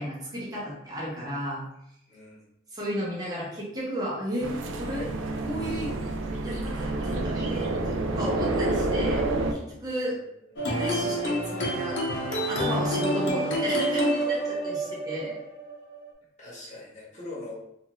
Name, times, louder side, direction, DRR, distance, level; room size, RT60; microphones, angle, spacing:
voice 1, 0.0-1.6 2.7-5.1 5.4-5.9 6.4-9.3 9.5-10.2 10.6-12.0 12.5-15.4, equal, 20° right, -5 dB, 0.7 m, -33 dB
voice 2, 2.1-2.4 10.0-10.1 10.5-10.7 16.4-17.6, left 2 dB, 35° left, -6 dB, 0.9 m, -42 dB
sound 1, 4.4-9.5, right 2 dB, 80° right, 0.3 m, -28 dB
sound 2, 10.6-16.1, right 1 dB, 75° left, 0.7 m, -28 dB
2.5 x 2.4 x 2.9 m, 0.78 s
head